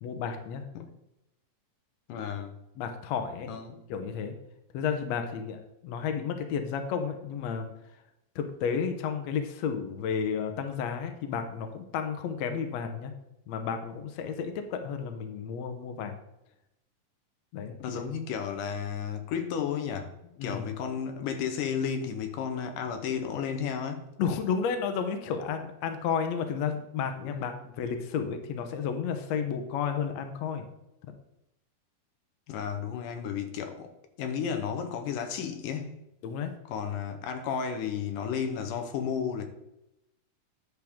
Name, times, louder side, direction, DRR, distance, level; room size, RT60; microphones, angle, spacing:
voice 1, 0.0-0.6 2.8-3.5 3.9-4.4 4.7-7.7 8.4-13.1 13.5-16.2 17.5-18.0 20.4-20.6 24.2-30.7 36.2-36.5, left 6 dB, 70° left, 1.9 m, -32 dB
voice 2, 2.1-2.5 3.5-3.8 17.6-20.2 20.4-24.1 27.2-27.6 32.5-33.9 34.2-36.0 36.7-39.4, left 7 dB, 85° left, 2.6 m, -33 dB
10.5 x 6.7 x 3.6 m
omnidirectional pair, 3.7 m